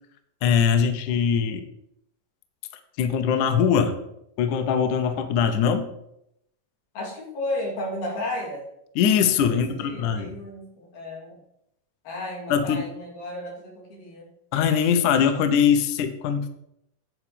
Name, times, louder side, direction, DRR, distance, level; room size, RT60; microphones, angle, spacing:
voice 1, 0.4-1.6 3.0-4.0 4.4-5.9 9.0-10.3 12.5-12.8 14.5-16.5, left 7 dB, 75° left, 8 dB, 1.9 m, -21 dB
voice 2, 6.9-8.6 9.5-11.4 12.0-14.3, left 1 dB, 90° left, -4 dB, 5.0 m, -33 dB
9.6 x 4.4 x 7.1 m, 0.78 s
omnidirectional pair, 4.1 m